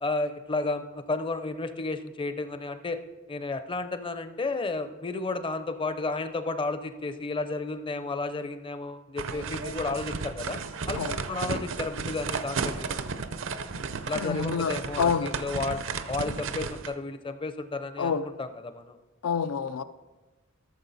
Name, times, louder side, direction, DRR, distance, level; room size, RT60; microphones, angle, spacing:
voice 1, 0.0-3.0 3.3-10.6 10.9-11.0 11.3-13.0 14.1-15.8 16.1-18.1 18.4-19.0, left 3 dB, 25° left, 0.5 m, -32 dB
sound 1, 9.2-16.9, right 5 dB, 65° right, 0.6 m, -34 dB
voice 2, 14.2-15.3 18.0-18.3 19.2-19.8, left 6 dB, 85° left, 0.4 m, -28 dB
13.0 x 6.9 x 4.0 m
head